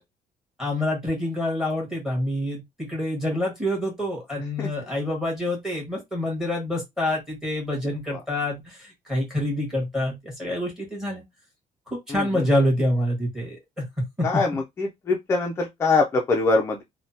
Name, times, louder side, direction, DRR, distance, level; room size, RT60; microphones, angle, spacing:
voice 1, 0.6-11.2 11.9-13.8 14.2-14.3, left 1 dB, 5° right, 1.4 m, -27 dB
voice 2, 14.8-16.8, left 3 dB, 20° left, 0.4 m, -22 dB
3.2 x 2.1 x 2.7 m
cardioid pair, 175°, 14 cm